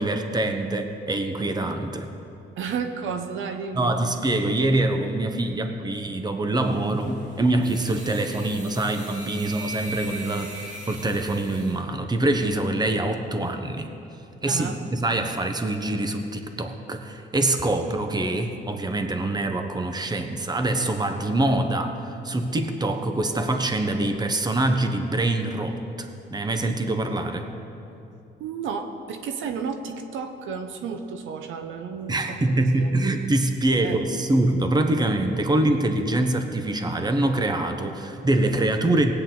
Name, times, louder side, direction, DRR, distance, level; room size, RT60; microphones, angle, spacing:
voice 1, 0.0-2.1 3.7-13.9 14.4-27.5 32.1-39.1, right 2 dB, 20° right, 6 dB, 1.0 m, -24 dB
voice 2, 2.6-4.0 14.5-14.8 28.4-32.9 33.8-34.0, right 6 dB, 80° right, 6 dB, 0.9 m, -32 dB
sound 1, 6.6-11.8, right 2 dB, 35° right, 2.7 m, -40 dB
18.5 x 9.0 x 4.0 m, 2.8 s
cardioid pair, 90°, 20 cm